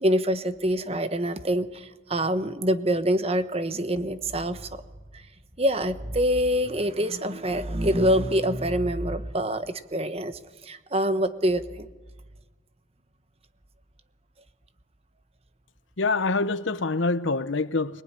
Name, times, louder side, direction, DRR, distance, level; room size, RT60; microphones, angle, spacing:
voice 1, 0.0-4.7 5.6-11.9, equal, 30° right, 1.1 m, -25 dB
voice 2, 16.0-18.0, left 3 dB, 80° left, 0.9 m, -25 dB
25.0 x 20.0 x 9.9 m
head